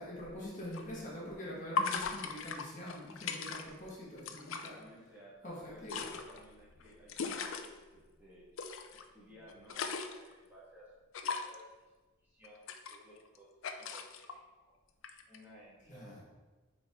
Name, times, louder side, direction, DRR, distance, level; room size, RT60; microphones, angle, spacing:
voice 1, 0.0-4.7 5.4-6.1 15.9-16.2, equal, 35° left, -5 dB, 1.5 m, -44 dB
sound 1, 0.7-0.8 1.8-3.9 4.2-4.7 5.6-7.7 8.6-9.0 9.4-10.3 11.1-11.6 12.4-13.4 13.6-14.3 15.0-15.4, left 5 dB, 65° left, 0.5 m, -38 dB
voice 2, 4.4-8.5 8.9-10.9 11.2-11.9 12.2-12.6 12.9-13.5 13.8-14.4 14.7-14.8 15.3-16.2, equal, 10° right, -8 dB, 1.6 m, -57 dB
6.7 x 4.4 x 3.6 m, 1.2 s
head